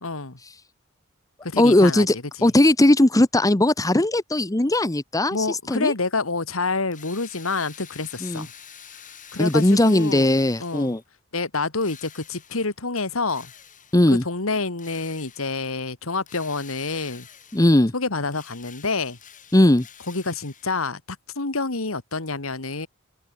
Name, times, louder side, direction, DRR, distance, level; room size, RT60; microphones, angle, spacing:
voice 1, 0.0-0.4 1.4-2.1 2.4-2.5 5.3-8.5 9.3-11.0 11.3-13.5 14.1-17.3 17.9-19.2 20.1-22.9, left 3 dB, 75° left, 2.1 m, -28 dB
voice 2, 1.6-2.1 2.4-5.9 8.2-8.5 9.4-11.0 13.9-14.2 17.5-17.9 19.5-19.9, left 1 dB, 15° left, 1.0 m, -18 dB
Drill, 6.9-11.1 11.8-12.8 13.3-14.1 14.8-15.7 16.3-17.9 18.3-20.9, left 8 dB, 40° left, 8.0 m, -47 dB
head